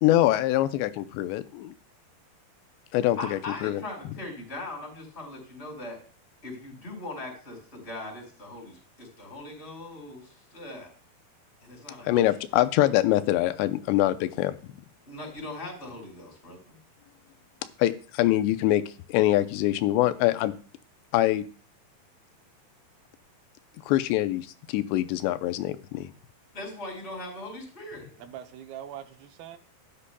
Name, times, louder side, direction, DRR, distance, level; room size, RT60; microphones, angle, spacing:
voice 1, 0.0-1.7 2.9-3.8 12.0-14.6 17.8-18.8 19.1-20.5 21.1-21.5 23.9-26.1, left 14 dB, 85° left, 2.8 m, -24 dB
voice 2, 3.2-6.0 6.4-10.9 11.6-12.6 15.1-16.8 26.5-28.1, left 2 dB, 15° left, 4.8 m, -40 dB
voice 3, 28.2-29.6, right 10 dB, 75° right, 2.4 m, -42 dB
13.5 x 9.8 x 2.2 m
omnidirectional pair, 4.9 m